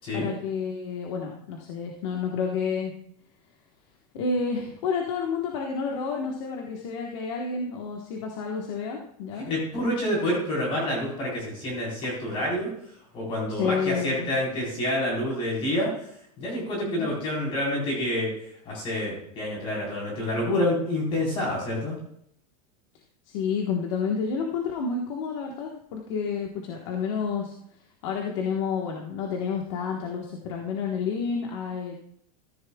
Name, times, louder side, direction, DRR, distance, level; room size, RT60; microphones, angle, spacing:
voice 1, 0.1-2.9 4.1-9.5 13.5-14.3 17.0-17.1 23.3-27.5 28.0-31.9, left 5 dB, 50° left, 0 dB, 1.3 m, -30 dB
voice 2, 9.5-12.7 13.1-15.9 16.4-22.0, left 1 dB, 30° left, -4 dB, 4.1 m, -28 dB
14.0 x 10.5 x 2.3 m, 0.70 s
supercardioid pair, 175°, 19 cm